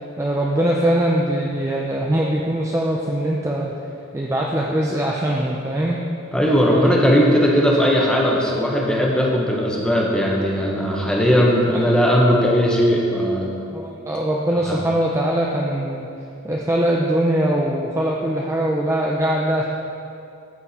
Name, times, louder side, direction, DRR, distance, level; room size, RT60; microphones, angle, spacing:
voice 1, 0.2-3.7 4.1-6.0 6.6-7.4 11.1-11.2 11.7-11.8 13.7-16.1 16.4-19.6, right 1 dB, 10° right, -2 dB, 0.4 m, -22 dB
voice 2, 6.3-13.5 14.7-14.8, equal, 5° left, -2 dB, 1.0 m, -18 dB
13.0 x 4.6 x 4.2 m, 2.6 s
head